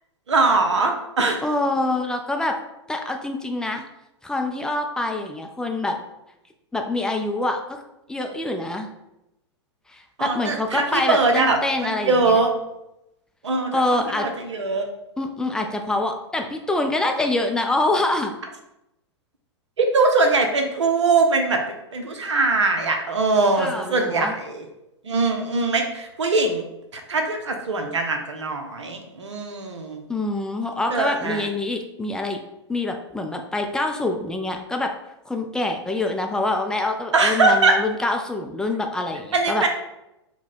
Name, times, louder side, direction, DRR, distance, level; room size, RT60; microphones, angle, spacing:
voice 1, 0.3-1.4 10.2-12.5 13.4-14.9 19.8-21.6 21.9-24.6 25.0-26.7 26.9-30.0 30.9-31.5 37.1-37.8 39.3-39.7, right 3 dB, 75° right, 4 dB, 0.8 m, -21 dB
voice 2, 1.4-2.6 2.9-3.8 4.2-6.0 6.7-7.8 8.1-8.9 9.9-12.4 13.7-14.3 15.2-18.3 23.6-24.3 30.1-32.4 32.7-34.9 35.3-39.6, left 2 dB, 5° left, 3 dB, 0.4 m, -25 dB
4.7 x 2.2 x 4.1 m, 0.89 s
figure-of-eight pair, 105°, 15 cm